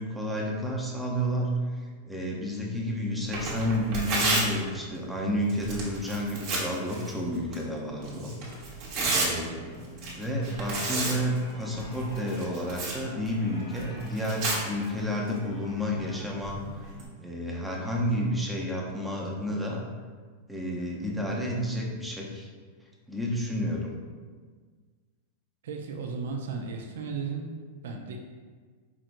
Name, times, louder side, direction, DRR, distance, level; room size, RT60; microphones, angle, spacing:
voice 1, 0.0-8.3 9.1-9.8 10.2-16.6 17.2-19.8 20.5-22.5 23.1-23.9, equal, 5° right, -3 dB, 0.6 m, -31 dB
Tearing, 3.2-17.1, right 2 dB, 45° right, 1.1 m, -34 dB
sound 1, 9.3-16.4, right 1 dB, 85° left, 1.2 m, -47 dB
voice 2, 25.6-27.5 27.8-28.2, right 5 dB, 80° right, 2 dB, 0.4 m, -35 dB
4.7 x 2.9 x 2.5 m, 1.5 s
supercardioid pair, 140°, 0 cm